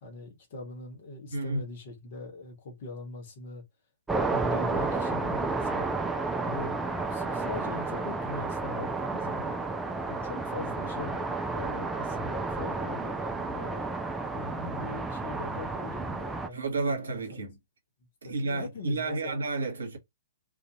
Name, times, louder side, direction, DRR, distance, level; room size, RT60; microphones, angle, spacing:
voice 1, 0.0-3.6 4.1-6.0 6.4-9.6 10.1-13.9 14.3-17.2 18.2-19.4, left 2 dB, 45° left, 1.1 m, -41 dB
voice 2, 1.3-1.6 16.5-17.6 18.2-20.0, right 3 dB, 65° right, 1.0 m, -31 dB
sound 1, 4.1-16.5, right 3 dB, 5° right, 0.4 m, -31 dB
2.5 x 2.4 x 2.7 m
figure-of-eight pair, 115°, 0 cm